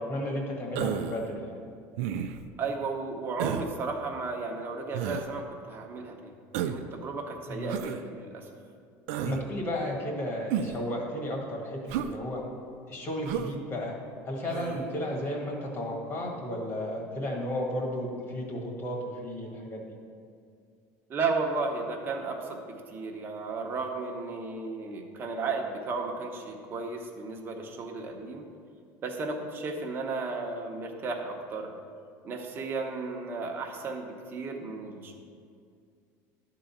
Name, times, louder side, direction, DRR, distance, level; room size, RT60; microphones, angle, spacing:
voice 1, 0.1-1.6 7.5-7.8 9.2-12.4 12.9-13.9 14.2-19.8, left 1 dB, 40° left, -1 dB, 1.8 m, -33 dB
Human voice, 0.7-1.2 2.0-2.5 3.4-3.7 4.9-5.3 6.5-6.9 7.7-8.0 9.1-9.4 10.5-10.9 11.9-12.1 13.2-13.5 14.5-14.8, right 9 dB, 80° right, 0.5 m, -32 dB
voice 2, 2.6-8.5 21.1-28.4 29.0-31.7 32.2-35.1, right 3 dB, 30° right, 1 dB, 1.1 m, -34 dB
11.0 x 3.9 x 7.3 m, 2.3 s
cardioid pair, 145°, 7 cm